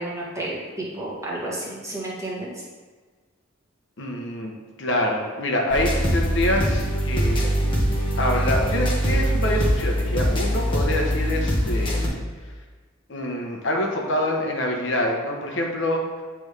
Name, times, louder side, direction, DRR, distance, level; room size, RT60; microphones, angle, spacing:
voice 1, 0.0-2.6, right 1 dB, 15° right, -6 dB, 1.3 m, -31 dB
voice 2, 4.0-7.4 8.2-12.0 13.1-16.0, left 1 dB, 65° left, 1 dB, 0.9 m, -26 dB
sound 1, 5.7-12.1, equal, 25° left, 1.1 m, -23 dB
8.4 x 3.4 x 3.2 m, 1.4 s
head